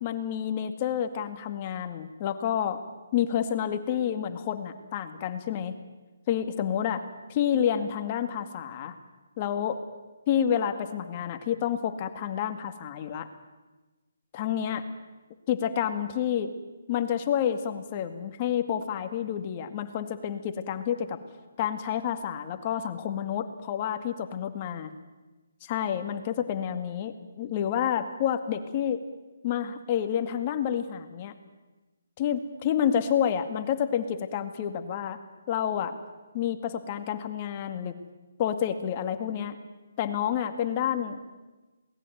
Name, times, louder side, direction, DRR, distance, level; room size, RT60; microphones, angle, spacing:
voice 1, 0.0-2.8 3.1-5.8 6.3-7.0 7.3-9.0 9.4-9.8 10.3-13.3 14.3-14.8 15.5-16.5 16.9-21.2 21.6-24.9 25.6-29.0 29.4-31.3 32.2-35.2 35.5-36.0 36.3-38.0 38.4-39.6 40.0-41.2, left 9 dB, 30° left, 9 dB, 2.1 m, -29 dB
27.5 x 19.5 x 9.3 m, 1.2 s
hypercardioid pair, 155°, 0 cm